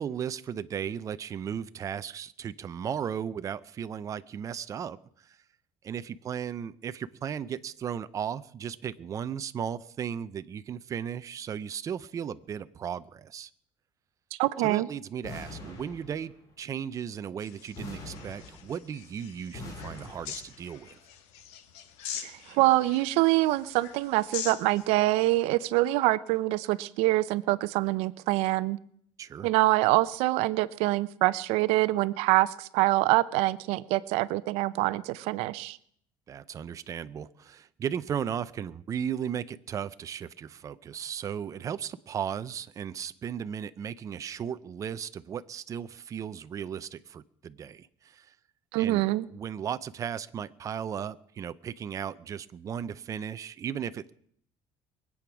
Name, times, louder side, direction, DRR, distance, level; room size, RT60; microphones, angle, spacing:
voice 1, 0.0-5.4 5.8-13.5 14.6-21.0 29.2-29.5 36.3-48.3 48.8-49.0 49.3-54.1, right 8 dB, 35° right, 13 dB, 0.6 m, -36 dB
voice 2, 14.4-14.9 22.2-28.8 29.4-35.8 48.7-49.3, right 18 dB, 90° right, 17 dB, 0.6 m, -25 dB
sound 1, 15.2-16.5 17.8-19.0 19.5-20.7, left 2 dB, 35° left, 4.6 m, -43 dB
sound 2, 17.4-24.9, left 9 dB, 90° left, 1.6 m, -43 dB
22.5 x 8.6 x 6.1 m, 0.65 s
cardioid pair, 135°, 10 cm